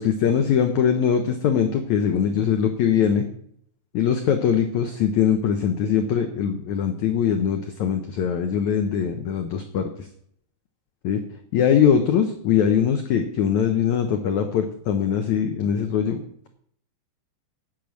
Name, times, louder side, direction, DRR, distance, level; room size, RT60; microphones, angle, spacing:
voice 1, 0.0-3.2 3.9-10.1 11.0-11.2 11.5-16.5, left 8 dB, 85° left, 6 dB, 1.6 m, -22 dB
10.5 x 8.9 x 6.3 m, 0.67 s
omnidirectional pair, 4.7 m